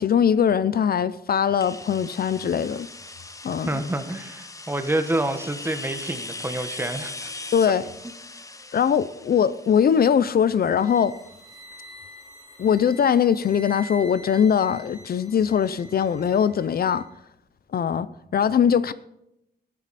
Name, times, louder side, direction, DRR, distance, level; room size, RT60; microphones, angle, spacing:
voice 1, 0.0-2.9 3.4-3.7 7.5-7.8 8.7-11.1 12.6-17.0 17.7-18.9, left 8 dB, 60° left, 16 dB, 0.5 m, -21 dB
sound 1, 1.6-11.2, left 2 dB, 20° left, 0.8 m, -40 dB
voice 2, 3.6-7.3 8.0-8.1, right 1 dB, 15° right, 8 dB, 1.2 m, -28 dB
sound 2, 10.7-17.1, left 1 dB, 45° left, 4.0 m, -45 dB
14.0 x 10.5 x 4.2 m, 0.81 s
wide cardioid pair, 135°, 17 cm